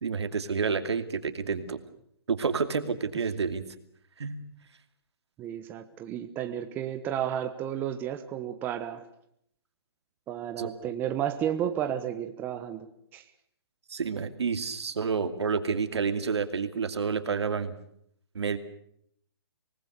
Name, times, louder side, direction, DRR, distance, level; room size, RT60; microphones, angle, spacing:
voice 1, 0.0-1.8 2.3-3.6 4.2-4.4 10.6-10.7 13.9-17.7 18.3-18.6, right 5 dB, 80° right, 9 dB, 2.6 m, -29 dB
voice 2, 5.4-9.1 10.3-12.9 13.1-13.2, right 10 dB, 15° right, 7 dB, 1.0 m, -32 dB
26.0 x 19.5 x 6.7 m, 0.69 s
hypercardioid pair, 165°, 14 cm